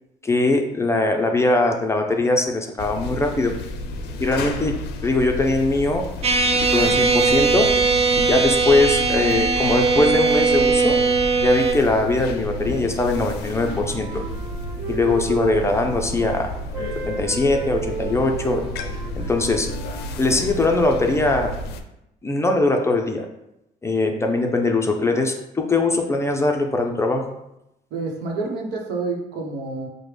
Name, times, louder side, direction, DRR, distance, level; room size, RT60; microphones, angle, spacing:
voice 1, 0.2-3.5 4.2-4.7 5.0-6.0 6.5-7.7 8.2-11.0 11.4-14.2 14.9-16.5 17.1-18.6 19.1-19.7 20.2-21.5 22.2-23.3 23.8-27.3, left 2 dB, 15° left, 3 dB, 0.5 m, -21 dB
sound 1, 2.8-21.8, left 1 dB, 75° left, 0.5 m, -32 dB
sound 2, 6.2-11.7, right 4 dB, 35° right, 0.5 m, -19 dB
Wind instrument woodwind instrument, 13.0-16.4 16.7-20.6, right 5 dB, 20° right, 0.8 m, -34 dB
voice 2, 27.9-29.9, right 3 dB, 80° right, 0 dB, 0.9 m, -28 dB
4.8 x 2.1 x 3.3 m, 0.85 s
cardioid pair, 110°, 17 cm